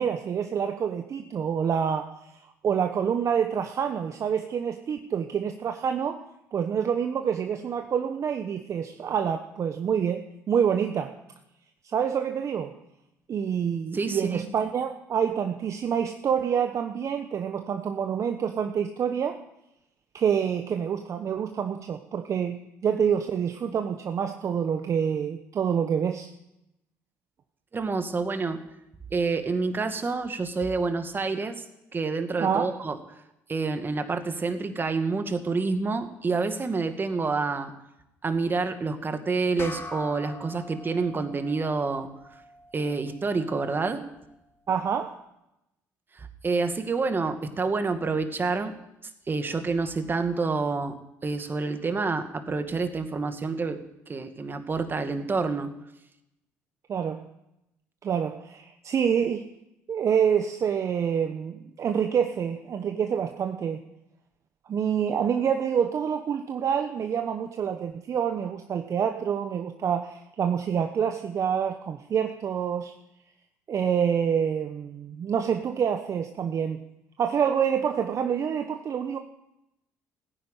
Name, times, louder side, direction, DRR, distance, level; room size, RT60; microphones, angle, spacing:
voice 1, 0.0-2.2 2.6-6.2 6.5-11.1 11.9-12.8 13.3-19.4 20.1-26.3 32.4-32.7 44.7-45.2 56.9-57.2 58.0-59.4 59.9-63.8 64.7-72.9 73.7-76.8 77.2-79.2, right 7 dB, 50° right, 6 dB, 1.1 m, -27 dB
voice 2, 13.9-14.5 27.7-28.6 29.1-31.6 31.9-33.0 33.5-37.7 38.2-42.1 42.7-44.0 46.2-48.7 49.3-51.0 51.2-53.8 54.1-55.7, right 4 dB, 30° right, 7 dB, 2.1 m, -28 dB
sound 1, 39.6-44.4, left 2 dB, 35° left, 2.3 m, -44 dB
15.5 x 10.0 x 9.1 m, 0.86 s
supercardioid pair, 65°, 7 cm